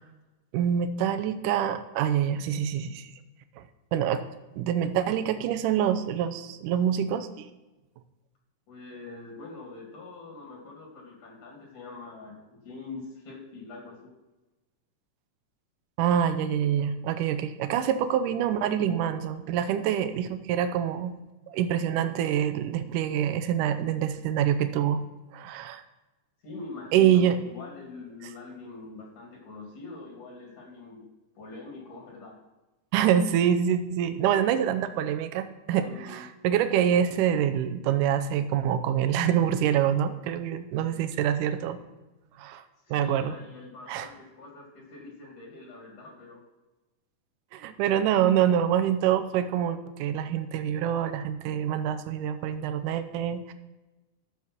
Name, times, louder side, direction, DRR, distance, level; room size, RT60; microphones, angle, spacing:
voice 1, 0.5-3.1 3.6-3.7 3.9-4.2 4.6-7.5 16.0-21.1 21.5-25.0 25.3-25.8 26.9-27.4 32.9-41.8 42.4-42.6 42.9-43.3 43.9-44.1 47.5-53.5, right 9 dB, 80° right, 10 dB, 2.3 m, -26 dB
voice 2, 8.7-14.1 26.4-31.1 31.4-32.4 35.8-36.3 42.8-46.4, left 3 dB, 65° left, 0 dB, 3.8 m, -44 dB
12.0 x 7.3 x 6.0 m, 1.1 s
omnidirectional pair, 3.6 m